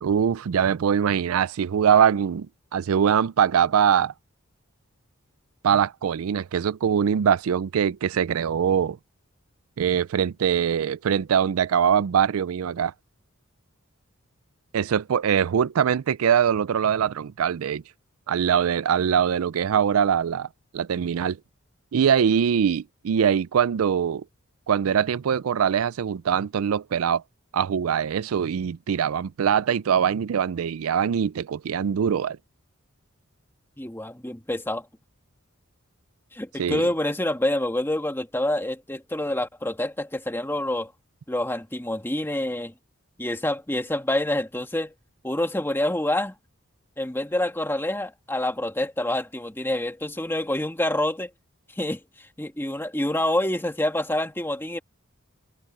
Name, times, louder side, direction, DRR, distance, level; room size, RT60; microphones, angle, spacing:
voice 1, 0.0-2.5 2.7-4.1 5.6-9.0 9.8-12.9 14.7-17.8 18.3-20.5 20.7-21.4 21.9-24.2 24.7-27.2 27.5-32.4 36.6-36.8, right 8 dB, 85° right, 0.4 m, -22 dB
voice 2, 33.8-34.9 36.3-40.9 41.3-42.7 43.2-44.9 45.2-46.3 47.0-51.3 51.8-52.0 52.4-54.8, left 1 dB, 10° left, 1.9 m, -27 dB
head